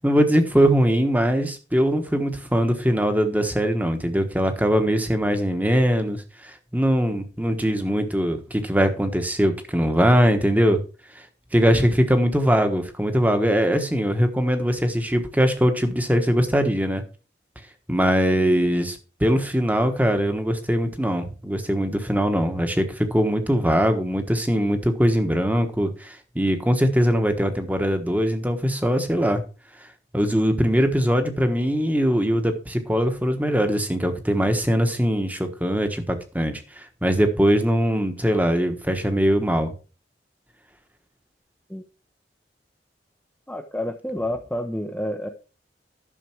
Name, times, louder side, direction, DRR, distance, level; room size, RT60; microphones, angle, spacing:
voice 1, 0.0-10.8 11.5-17.0 17.9-29.4 30.1-39.7, equal, 10° right, 7 dB, 1.2 m, -21 dB
voice 2, 43.5-45.3, left 1 dB, 5° left, 4 dB, 0.7 m, -29 dB
11.0 x 6.8 x 4.5 m, 0.34 s
head